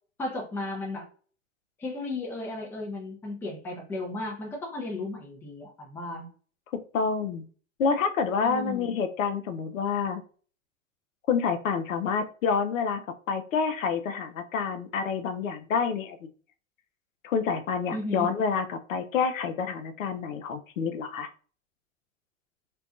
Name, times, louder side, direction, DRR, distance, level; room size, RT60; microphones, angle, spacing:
voice 1, 0.2-1.1 1.8-6.3 8.4-8.9 17.9-18.3, left 2 dB, 5° left, 0 dB, 0.4 m, -34 dB
voice 2, 6.9-7.4 7.8-10.2 11.3-13.0 13.3-16.3 17.2-21.3, left 5 dB, 80° left, 9 dB, 0.5 m, -28 dB
2.5 x 2.2 x 2.3 m, 0.41 s
hypercardioid pair, 100°, 39 cm